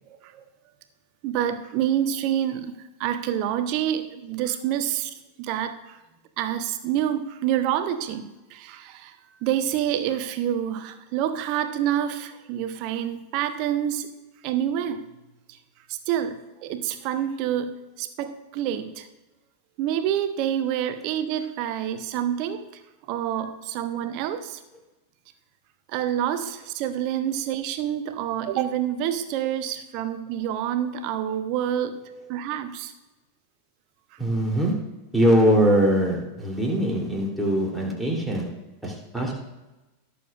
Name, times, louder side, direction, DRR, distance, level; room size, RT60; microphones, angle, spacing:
voice 1, 0.1-0.4 1.2-6.0 6.4-9.2 9.4-14.1 14.4-15.0 15.9-19.1 19.8-22.7 23.1-24.6 25.9-32.0 32.3-32.9, right 10 dB, 45° right, 10 dB, 0.9 m, -27 dB
voice 2, 34.2-34.7 35.1-38.5 38.8-39.3, equal, ahead, -2 dB, 3.2 m, -22 dB
18.5 x 7.1 x 2.5 m, 1.0 s
figure-of-eight pair, 90°, 0 cm